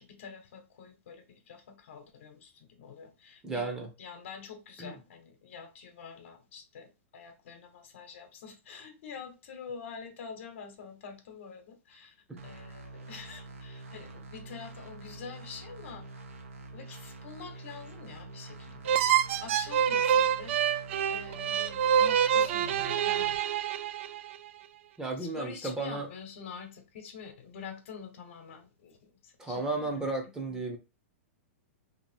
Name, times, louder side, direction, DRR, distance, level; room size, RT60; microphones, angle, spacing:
voice 1, 0.0-3.7 4.0-12.1 12.4-16.1 16.7-19.0 19.4-20.6 21.1-23.4 25.2-30.1 30.5-30.6, left 6 dB, 70° left, 1.1 m, -46 dB
voice 2, 3.4-3.9 4.8-5.0 12.3-12.4 25.0-26.1 29.4-30.8, right 3 dB, 10° right, 0.8 m, -33 dB
sound 1, 12.4-23.4, right 3 dB, 90° right, 0.9 m, -46 dB
sound 2, 18.8-24.4, right 9 dB, 60° right, 0.4 m, -26 dB
2.9 x 2.6 x 4.4 m
hypercardioid pair, 140°, 7 cm